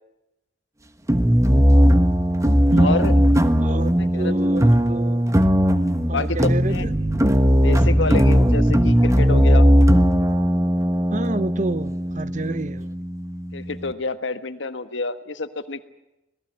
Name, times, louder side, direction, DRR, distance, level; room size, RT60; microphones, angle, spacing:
sound 1, 1.1-13.9, equal, 15° right, 1.2 m, -18 dB
voice 1, 2.7-3.1 3.8-4.6 6.1-6.9 7.6-9.7 13.5-15.8, left 3 dB, 85° left, 1.5 m, -28 dB
voice 2, 3.6-5.2 6.1-6.8 11.1-12.9, right 2 dB, 40° right, 0.8 m, -28 dB
26.0 x 18.5 x 8.2 m
head